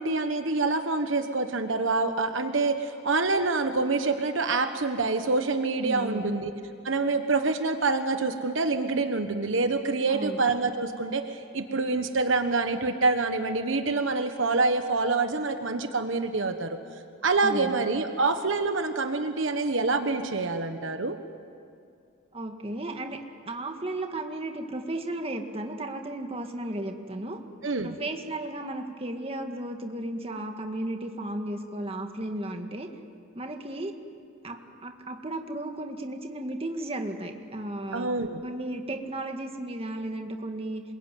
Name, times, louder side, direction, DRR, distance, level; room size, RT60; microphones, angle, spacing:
voice 1, 0.0-6.5 6.8-16.8 17.2-21.2 27.6-27.9 37.9-38.4, right 3 dB, 70° right, 8 dB, 1.3 m, -26 dB
voice 2, 5.8-6.4 10.1-10.4 17.4-17.8 22.3-23.2 23.5-27.4 27.8-32.9 33.4-33.9 34.4-38.1 38.4-40.8, right 1 dB, 30° right, 4 dB, 1.9 m, -34 dB
27.0 x 22.0 x 9.3 m, 2.4 s
head